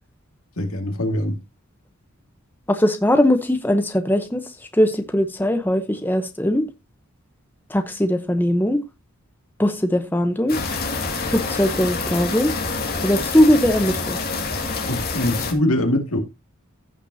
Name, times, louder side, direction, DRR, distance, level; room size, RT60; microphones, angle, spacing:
voice 1, 0.6-1.4 14.9-16.2, left 1 dB, 75° left, 2.1 m, -22 dB
voice 2, 2.7-4.4 4.7-6.6 7.7-8.8 9.6-10.6 11.2-12.5 13.0-14.2, left 1 dB, 10° left, 0.8 m, -20 dB
sound 1, 10.5-15.5, left 4 dB, 45° left, 2.1 m, -27 dB
15.5 x 5.9 x 2.7 m
head